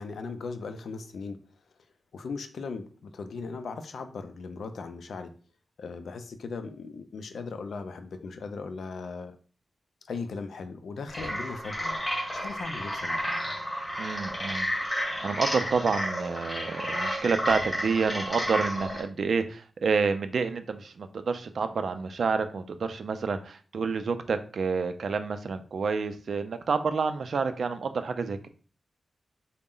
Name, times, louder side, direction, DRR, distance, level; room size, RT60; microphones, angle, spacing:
voice 1, 0.0-1.4 2.1-5.3 5.8-9.4 10.1-12.0 12.3-13.2, left 4 dB, 90° left, 8 dB, 0.4 m, -38 dB
sound 1, 11.1-19.0, equal, 10° left, 1.1 m, -31 dB
voice 2, 14.0-28.5, right 5 dB, 65° right, 9 dB, 0.4 m, -29 dB
3.9 x 2.1 x 3.7 m, 0.39 s
wide cardioid pair, 155°, 0 cm